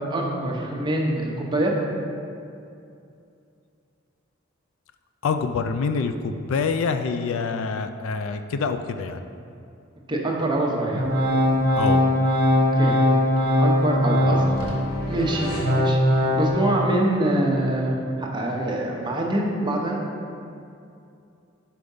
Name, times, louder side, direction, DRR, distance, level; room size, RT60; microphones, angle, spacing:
voice 1, 0.0-1.7 10.1-11.1 12.7-13.0 13.6-14.7 15.1-20.0, right 1 dB, 25° right, -1 dB, 0.7 m, -25 dB
voice 2, 5.2-9.2 11.8-12.0, left 5 dB, 75° left, 8 dB, 0.3 m, -26 dB
Organ, 10.9-14.8 15.2-16.5, left 1 dB, 50° right, 1.1 m, -20 dB
sound 1, 13.7-16.7, left 1 dB, 50° left, 1.4 m, -34 dB
5.0 x 4.5 x 5.4 m, 2.5 s
head